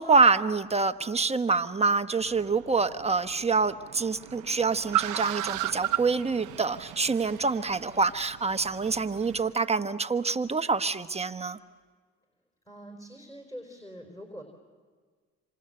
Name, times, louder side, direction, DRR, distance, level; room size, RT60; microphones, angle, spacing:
voice 1, 0.0-11.6, right 4 dB, 20° right, 9 dB, 1.1 m, -26 dB
Car, 2.1-9.5, right 14 dB, 85° right, 0.9 m, -36 dB
voice 2, 12.7-14.4, equal, 10° left, 3 dB, 4.2 m, -44 dB
27.0 x 26.5 x 7.8 m, 1.5 s
cardioid pair, 90°, 30 cm